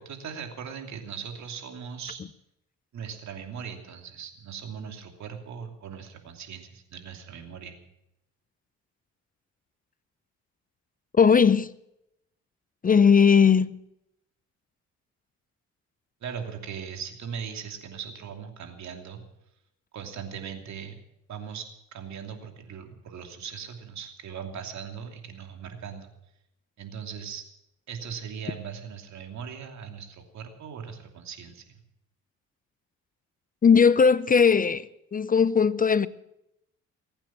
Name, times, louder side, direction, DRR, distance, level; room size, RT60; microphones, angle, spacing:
voice 1, 0.0-2.2 2.9-7.8 16.2-19.2 19.9-20.9 21.3-26.1 26.8-27.5 27.9-31.7, right 7 dB, 65° right, 2.9 m, -39 dB
voice 2, 11.1-11.7 12.8-13.7 33.6-36.1, left 6 dB, 30° left, 0.5 m, -19 dB
21.5 x 8.9 x 7.5 m
cardioid pair, 90°, 30 cm